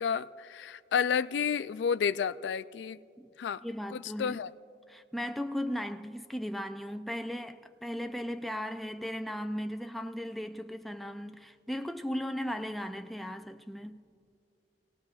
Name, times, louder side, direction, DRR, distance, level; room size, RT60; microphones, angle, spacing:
voice 1, 0.0-3.0 3.4-3.6 3.9-4.5, left 7 dB, 85° left, 0.3 m, -31 dB
voice 2, 3.6-4.4 4.9-14.0, equal, ahead, 0.3 m, -37 dB
27.5 x 18.0 x 2.4 m
head